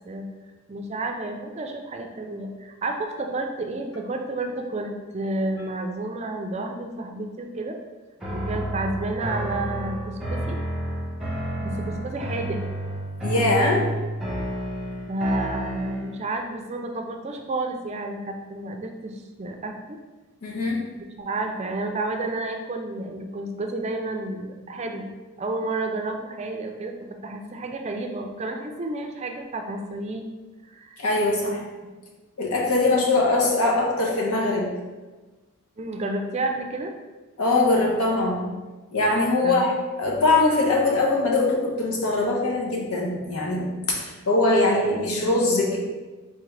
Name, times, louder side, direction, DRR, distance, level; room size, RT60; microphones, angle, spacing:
voice 1, 0.7-7.8 8.3-10.6 11.6-12.6 15.1-20.0 21.2-26.9 27.2-30.3 30.6-31.0 32.8-32.9 35.8-36.9 39.4-39.7, right 2 dB, 30° right, 4 dB, 0.4 m, -31 dB
sound 1, 8.2-16.3, right 1 dB, ahead, 0.9 m, -30 dB
voice 2, 13.2-13.9 20.4-20.8 31.0-31.6 32.4-34.7 37.4-38.5 38.9-39.7 40.0-45.8, left 2 dB, 85° left, -2 dB, 1.0 m, -22 dB
4.2 x 3.7 x 3.2 m, 1.2 s
head